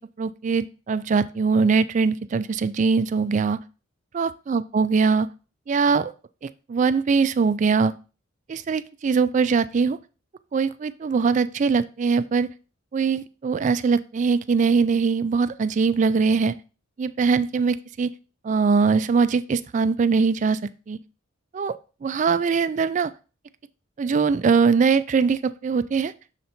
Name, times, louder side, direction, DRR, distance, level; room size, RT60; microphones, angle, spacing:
voice 1, 0.2-3.6 4.1-5.3 5.7-6.1 6.4-7.9 8.5-10.0 10.5-12.5 12.9-16.5 17.0-18.1 18.4-20.6 20.9-21.0 21.5-23.1 24.0-26.1, right 5 dB, 40° right, 14 dB, 0.3 m, -22 dB
6.6 x 4.0 x 4.3 m, 0.33 s
head